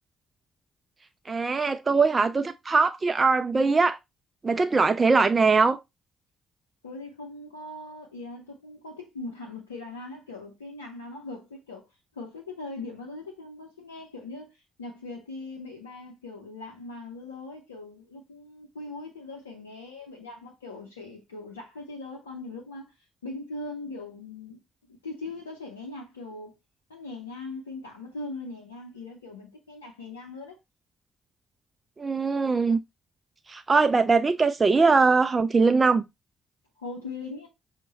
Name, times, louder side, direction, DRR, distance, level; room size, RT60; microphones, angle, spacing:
voice 1, 1.3-4.0 4.4-5.8 32.0-32.8 33.5-36.0, right 4 dB, 30° right, 0.3 m, -21 dB
voice 2, 6.8-11.9 12.1-22.9 23.2-24.6 25.0-26.6 26.9-30.6 36.8-37.5, left 2 dB, 85° left, 0.6 m, -40 dB
5.2 x 2.1 x 4.0 m
figure-of-eight pair, 45°, 0 cm